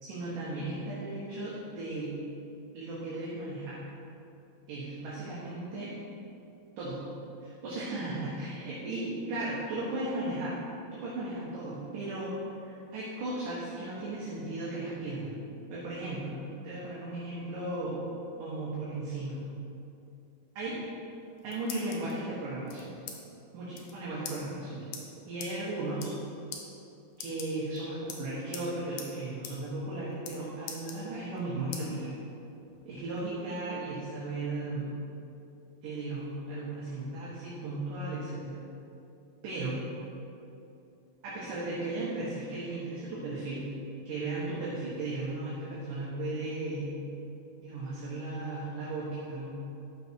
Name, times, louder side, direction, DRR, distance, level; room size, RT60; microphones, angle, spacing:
voice 1, 0.0-2.2 2.7-3.8 4.7-5.9 6.8-7.0 7.4-10.6 10.9-12.3 12.6-15.3 15.7-16.4 16.6-18.0 18.4-19.4 20.6-20.7 21.4-22.9 23.5-24.9 25.3-26.2 27.2-32.1 32.9-35.0 35.8-38.6 39.4-39.8 41.2-43.7 44.1-46.9 47.6-49.5, right 2 dB, 65° right, -8 dB, 3.0 m, -36 dB
sound 1, 21.1-22.1 22.7-23.2 23.4-23.5 23.7-23.9 24.2-24.4 24.9-25.0 25.4-25.5 25.9-26.2 26.5-26.6 27.1-27.8 28.1-28.7 29.0-29.1 29.4-29.6 29.8-30.4 30.7-31.4 31.7-31.9 32.3-33.2, left 7 dB, 80° left, 2.8 m, -42 dB
12.0 x 6.7 x 4.6 m, 2.8 s
omnidirectional pair, 4.3 m